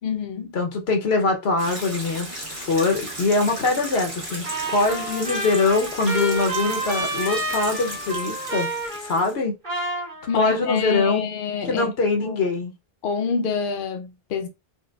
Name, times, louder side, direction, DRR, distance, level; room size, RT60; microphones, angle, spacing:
voice 1, 0.0-0.6 10.3-11.9 12.2-12.4 13.0-14.5, left 6 dB, 65° left, 0.7 m, -27 dB
voice 2, 0.5-8.7 9.0-9.5 10.3-11.2 11.7-12.7, left 3 dB, 85° left, 1.1 m, -23 dB
sound 1, 1.6-9.3, right 1 dB, 35° right, 1.1 m, -35 dB
Trumpet, 4.4-9.4 9.6-10.7, right 2 dB, 50° right, 1.6 m, -30 dB
4.3 x 2.2 x 2.3 m
omnidirectional pair, 1.0 m